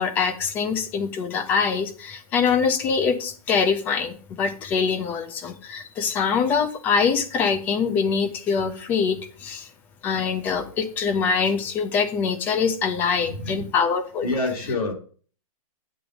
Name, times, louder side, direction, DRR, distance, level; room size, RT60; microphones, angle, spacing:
voice 1, 0.0-9.7 10.0-14.3, left 6 dB, 10° left, 12 dB, 0.3 m, -24 dB
voice 2, 13.2-13.7 14.2-14.9, left 2 dB, 85° left, 1 dB, 3.4 m, -27 dB
8.7 x 3.0 x 6.1 m, 0.41 s
hypercardioid pair, 165°, 19 cm